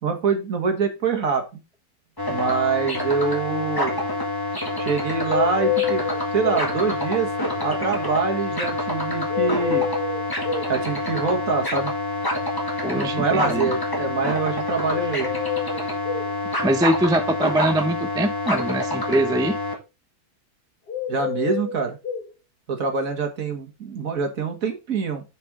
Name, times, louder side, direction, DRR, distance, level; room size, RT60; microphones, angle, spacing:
voice 1, 0.0-1.6 2.3-4.0 4.8-6.0 6.3-7.3 7.6-9.9 10.7-11.9 12.9-15.4 21.1-22.0 22.7-25.2, right 5 dB, 55° right, 5 dB, 1.9 m, -25 dB
sound 1, 2.2-19.7, left 2 dB, 15° left, 1.9 m, -27 dB
sound 2, 5.3-6.7 9.3-10.7 14.9-16.3 20.9-22.3, left 9 dB, 70° left, 2.3 m, -27 dB
voice 2, 12.8-13.7 16.6-19.6, right 1 dB, 5° right, 7 dB, 0.4 m, -23 dB
6.7 x 5.2 x 4.8 m, 0.27 s
omnidirectional pair, 1.8 m